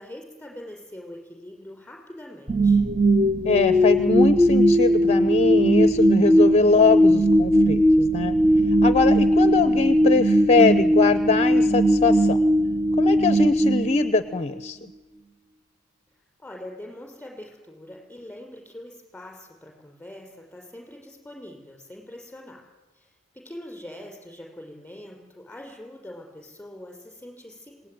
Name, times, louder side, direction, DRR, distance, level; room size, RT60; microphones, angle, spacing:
voice 1, 0.0-2.8 16.4-22.6 22.9-27.9, left 1 dB, 5° left, 1 dB, 5.8 m, -43 dB
sound 1, 2.5-14.6, equal, 20° right, 0.8 m, -19 dB
voice 2, 3.4-8.4 8.8-12.4 13.0-14.8, left 3 dB, 30° left, 12 dB, 0.7 m, -22 dB
26.5 x 19.0 x 9.5 m, 1.2 s
head